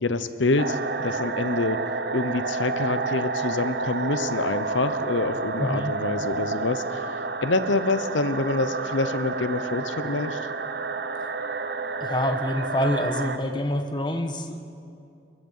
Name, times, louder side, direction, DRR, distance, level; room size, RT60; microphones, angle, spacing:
voice 1, 0.0-1.8 2.1-7.0 7.4-10.5, left 3 dB, 85° left, 12 dB, 1.0 m, -26 dB
sound 1, 0.6-13.4, right 4 dB, 55° right, 0.8 m, -30 dB
voice 2, 5.6-5.9 12.0-14.8, left 1 dB, 25° left, 7 dB, 1.2 m, -27 dB
22.5 x 21.5 x 5.6 m, 2.5 s
head